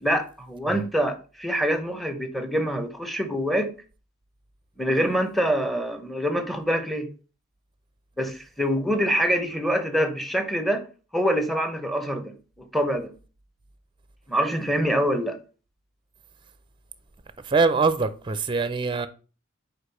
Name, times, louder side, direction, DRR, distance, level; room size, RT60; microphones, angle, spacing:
voice 1, 0.0-3.7 4.8-7.1 8.2-10.8 11.1-13.1 14.3-15.4, equal, ahead, 0.8 m, -25 dB
voice 2, 17.4-19.1, right 4 dB, 25° right, 0.5 m, -23 dB
5.0 x 4.4 x 5.6 m
head